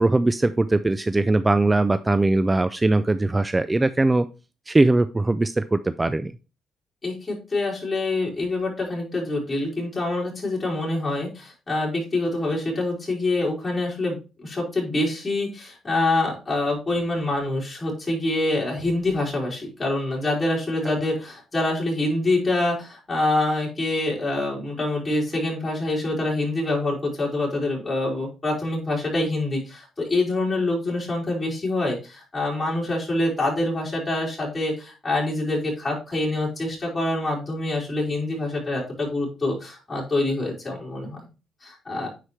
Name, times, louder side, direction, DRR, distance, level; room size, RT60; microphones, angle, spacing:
voice 1, 0.0-4.3 4.7-6.3, right 2 dB, 20° right, 13 dB, 0.4 m, -20 dB
voice 2, 7.0-41.2 41.6-42.1, left 2 dB, 30° left, -4 dB, 4.9 m, -26 dB
9.7 x 4.6 x 3.3 m, 0.31 s
cardioid pair, 90°, 0 cm